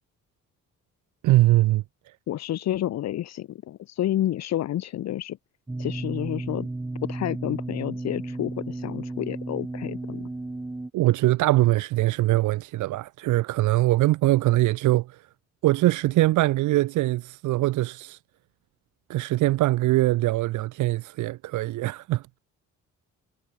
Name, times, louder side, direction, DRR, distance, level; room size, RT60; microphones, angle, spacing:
voice 1, 1.2-1.8 10.9-15.3 15.6-18.2 19.1-22.3, right 17 dB, 75° right, 0.6 m, -22 dB
voice 2, 2.3-5.4 5.8-6.7 7.1-10.3, left 13 dB, 60° left, 0.8 m, -30 dB
sound 1, 5.7-10.9, right 2 dB, 10° right, 0.5 m, -33 dB
cardioid pair, 90°, 30 cm